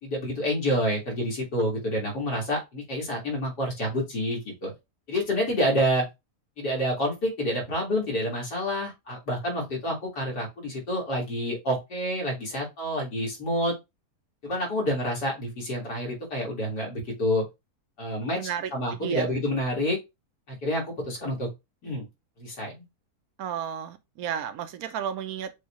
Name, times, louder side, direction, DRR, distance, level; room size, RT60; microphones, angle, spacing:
voice 1, 0.0-4.7 5.1-6.0 6.6-13.7 14.4-17.4 18.0-20.0 20.5-21.5 21.8-22.1 22.4-22.8, equal, 80° left, 2.5 m, -28 dB
voice 2, 18.3-19.3 23.4-25.6, right 9 dB, 70° right, 1.1 m, -33 dB
6.2 x 2.4 x 3.0 m
omnidirectional pair, 1.8 m